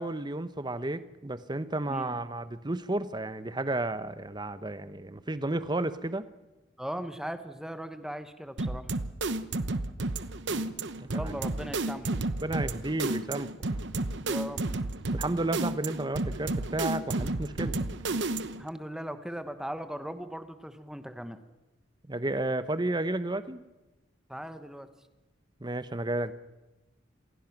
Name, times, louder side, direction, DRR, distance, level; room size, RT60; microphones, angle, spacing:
voice 1, 0.0-6.3 11.0-11.3 12.4-13.5 15.1-17.8 22.1-23.6 25.6-26.3, right 2 dB, 25° right, 13 dB, 0.9 m, -32 dB
voice 2, 6.8-8.9 11.1-12.2 14.2-14.7 18.6-21.4 24.3-24.9, equal, 5° right, 9 dB, 1.2 m, -38 dB
sound 1, 8.6-18.7, right 2 dB, 65° right, 1.0 m, -32 dB
27.5 x 16.0 x 6.0 m, 1.1 s
head